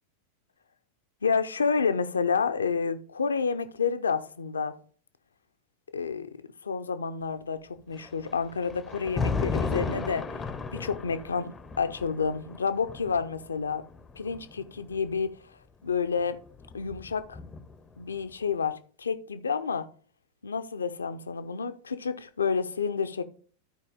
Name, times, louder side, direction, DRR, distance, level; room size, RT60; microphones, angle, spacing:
voice 1, 1.2-4.8 5.9-6.3 6.6-10.3 10.7-13.9 14.2-15.3 15.8-16.4 16.7-17.4 18.0-19.9 20.4-23.2, left 5 dB, 70° left, 0.7 m, -29 dB
Thunder, 7.9-15.1 16.2-17.9, left 4 dB, 15° left, 0.7 m, -35 dB
12.5 x 4.8 x 3.5 m
figure-of-eight pair, 90°, 0 cm